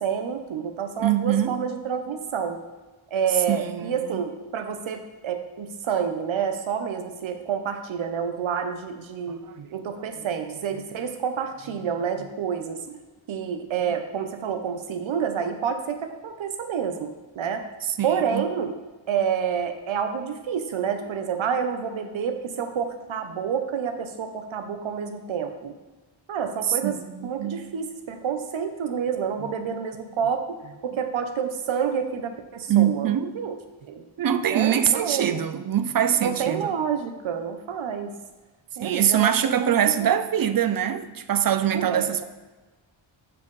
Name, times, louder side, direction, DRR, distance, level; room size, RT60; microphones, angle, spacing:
voice 1, 0.0-2.6 3.1-9.4 9.7-12.8 13.3-17.7 18.0-18.7 19.1-25.8 26.3-33.5 33.9-34.0 34.5-35.4 36.2-38.1 38.8-39.7 41.7-42.2, right 7 dB, 70° right, 0.8 m, -28 dB
voice 2, 1.0-1.6 3.5-4.2 9.6-9.7 10.2-10.3 12.9-13.0 18.0-18.5 26.8-27.7 32.7-33.3 34.2-36.7 38.8-42.2, right 9 dB, 45° right, 0.4 m, -23 dB
7.2 x 4.9 x 3.2 m
wide cardioid pair, 90°, 49 cm